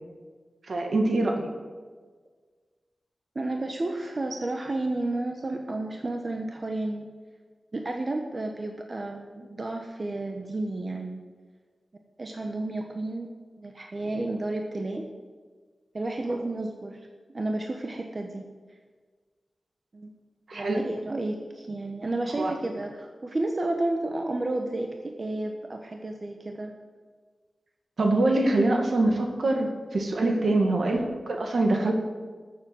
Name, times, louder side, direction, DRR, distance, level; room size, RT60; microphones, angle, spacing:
voice 1, 0.6-1.5 20.5-20.8 22.4-22.5 28.0-31.9, right 2 dB, 70° right, 2 dB, 2.2 m, -24 dB
voice 2, 3.3-7.1 7.7-11.2 12.2-13.3 13.6-15.1 15.9-17.0 17.3-18.4 19.9-20.1 20.5-26.7 30.2-30.4, right 2 dB, 40° right, 2 dB, 1.2 m, -31 dB
13.5 x 7.5 x 7.9 m, 1.5 s
wide cardioid pair, 75°, 0 cm